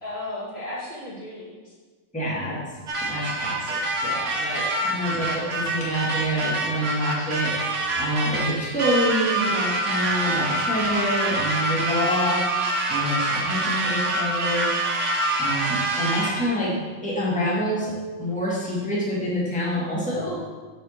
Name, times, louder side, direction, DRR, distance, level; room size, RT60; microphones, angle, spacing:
voice 1, 0.0-1.7 4.5-4.9, left 1 dB, 50° left, -6 dB, 2.3 m, -35 dB
voice 2, 2.1-2.6 3.0-12.5 12.9-14.7 15.4-17.9 18.2-20.4, equal, 5° left, -6 dB, 1.8 m, -27 dB
sound 1, 2.9-16.5, right 2 dB, 65° right, 1.5 m, -26 dB
8.2 x 4.1 x 6.5 m, 1.4 s
omnidirectional pair, 1.4 m